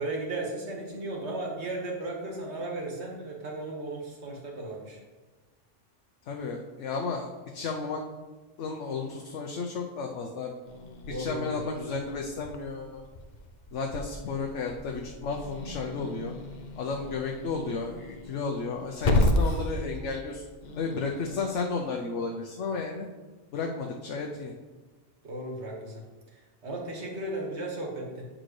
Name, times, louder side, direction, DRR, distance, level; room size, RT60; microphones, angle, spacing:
voice 1, 0.0-5.0 11.1-11.6 25.2-26.0 26.6-28.3, right 2 dB, 70° right, -1 dB, 1.8 m, -35 dB
voice 2, 6.3-8.0 8.6-10.6 11.1-13.0 13.7-16.3 16.8-20.4 20.8-23.1 23.5-24.5, left 4 dB, 80° left, 1 dB, 1.0 m, -33 dB
Growling / Hiss, 10.7-21.4, left 1 dB, 45° left, 0.7 m, -33 dB
8.8 x 6.3 x 3.2 m, 1.3 s
omnidirectional pair, 1.2 m